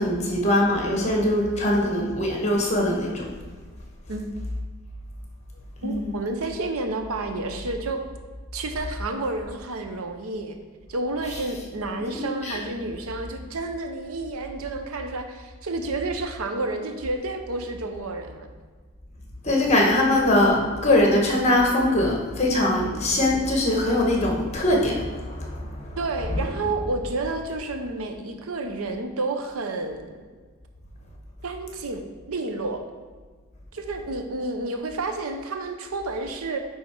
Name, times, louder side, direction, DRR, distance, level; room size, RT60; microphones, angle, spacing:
voice 1, 0.0-3.2 5.8-6.2 12.1-12.6 19.4-26.0, left 1 dB, 30° left, -1 dB, 1.3 m, -22 dB
voice 2, 5.8-8.0 8.5-10.6 10.9-18.5 19.9-20.2 26.0-30.2 31.4-32.8 33.7-36.6, right 2 dB, 80° right, 6 dB, 0.7 m, -30 dB
9.6 x 3.6 x 4.5 m, 1.5 s
head